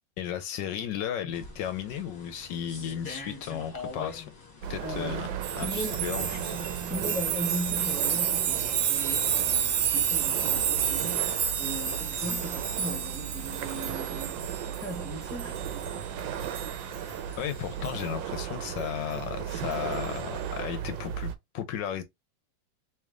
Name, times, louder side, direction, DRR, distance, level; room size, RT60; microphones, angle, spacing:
voice 1, 0.2-4.2 4.7-6.7 17.4-22.0, left 9 dB, 75° left, 1.2 m, -34 dB
sound 1, 1.3-17.9, left 4 dB, 25° left, 1.4 m, -47 dB
sound 2, 4.6-21.3, right 9 dB, 85° right, 1.4 m, -36 dB
voice 2, 4.8-5.2 5.6-6.0 6.9-14.3 14.8-15.9, equal, ahead, 1.3 m, -38 dB
sound 3, 5.4-16.1 16.4-17.4 17.8-18.0 19.7-19.9, right 8 dB, 70° right, 1.4 m, -30 dB
3.2 x 3.1 x 3.6 m
omnidirectional pair, 2.0 m